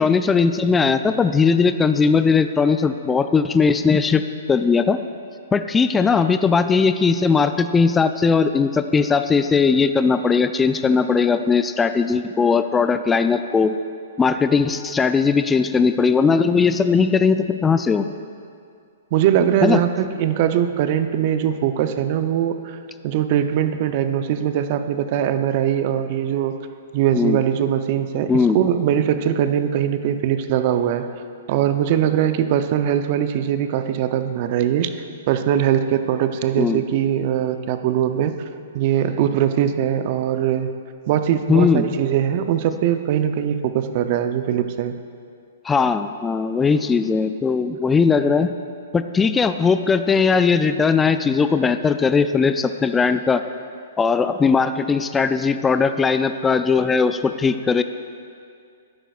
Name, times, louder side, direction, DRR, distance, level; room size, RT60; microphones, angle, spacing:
voice 1, 0.0-4.2 4.5-5.0 5.5-13.8 14.2-18.1 19.6-19.8 27.1-27.4 28.3-28.6 36.6-36.8 41.5-41.9 45.6-48.5 48.9-53.4 54.0-57.8, left 5 dB, 15° left, 10 dB, 0.3 m, -19 dB
voice 2, 19.1-22.8 23.0-26.5 26.9-31.1 31.5-34.9 35.3-38.3 38.7-40.7 41.1-44.9, right 10 dB, 45° right, 9 dB, 0.6 m, -21 dB
12.5 x 9.9 x 2.4 m, 2.3 s
hypercardioid pair, 130°, 0 cm